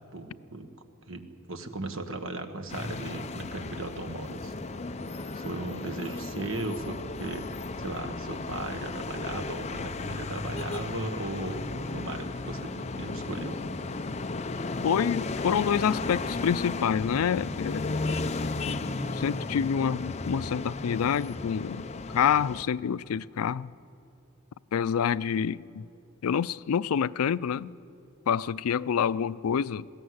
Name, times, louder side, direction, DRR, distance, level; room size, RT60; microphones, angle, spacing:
voice 1, 0.1-0.7 1.1-1.2 1.5-4.5 5.3-13.6, right 2 dB, 65° right, 1.4 m, -37 dB
sound 1, 2.7-22.6, left 3 dB, 30° left, 0.6 m, -34 dB
voice 2, 14.8-18.0 18.7-18.8 19.1-23.7 24.7-25.9 26.2-27.7 28.3-29.9, left 7 dB, 85° left, 0.4 m, -27 dB
20.5 x 14.5 x 9.6 m
head